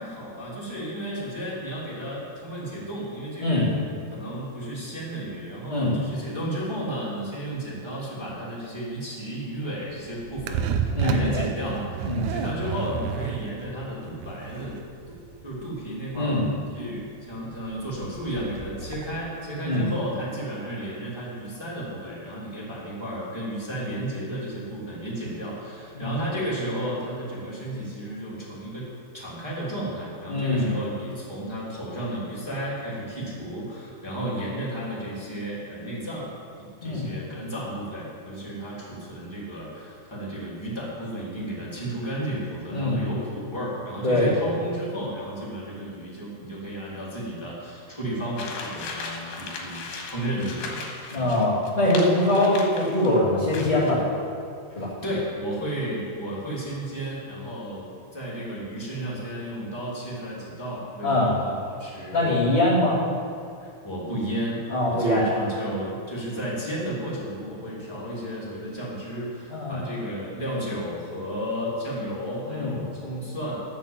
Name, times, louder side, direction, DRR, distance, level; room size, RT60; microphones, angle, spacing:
voice 1, 0.0-14.8 15.1-15.2 15.4-16.4 16.7-28.9 29.1-36.3 36.8-49.9 50.1-50.9 51.1-51.3 54.8-62.9 63.6-73.6, right 1 dB, 10° left, -7 dB, 2.2 m, -33 dB
sound 1, 10.0-19.1, right 7 dB, 90° right, 3.1 m, -31 dB
voice 2, 10.9-11.3 12.0-12.2 16.1-16.4 19.6-19.9 25.9-26.1 30.3-30.7 36.8-37.0 42.7-43.0 44.0-44.3 51.1-54.2 54.7-54.9 61.0-61.3 62.1-63.0 64.7-65.2 69.5-69.8 72.5-72.7, left 1 dB, 30° left, -10 dB, 0.8 m, -23 dB
sound 2, 48.4-53.1 53.5-54.0, left 4 dB, 65° left, 2.9 m, -37 dB
11.5 x 7.3 x 7.5 m, 2.4 s
omnidirectional pair, 5.3 m